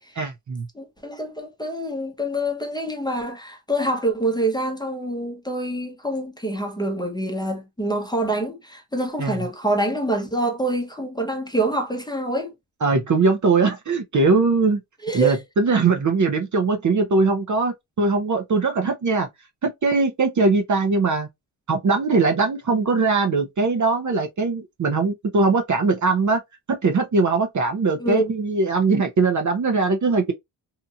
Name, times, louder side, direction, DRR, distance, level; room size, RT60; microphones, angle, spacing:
voice 1, 0.2-0.7 9.2-9.4 12.8-14.8 15.1-19.3 19.6-21.3 21.7-26.4 26.7-30.3, right 3 dB, 40° right, 0.7 m, -21 dB
voice 2, 0.7-12.5 15.0-15.4 28.0-28.3, right 1 dB, 10° left, 0.8 m, -26 dB
2.8 x 2.5 x 2.3 m
cardioid pair, 70°, 46 cm